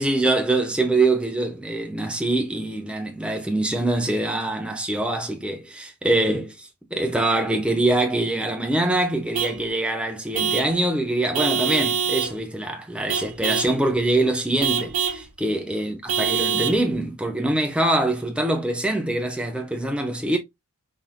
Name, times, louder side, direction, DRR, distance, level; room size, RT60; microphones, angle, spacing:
voice 1, 0.0-20.4, right 2 dB, 5° right, 0.9 m, -24 dB
Vehicle horn car horn honking / Truck, 9.3-9.6 10.3-10.8 11.3-12.4 13.1-13.8 14.6-15.2 16.1-16.8, right 6 dB, 90° right, 1.3 m, -24 dB
5.1 x 4.1 x 2.2 m
head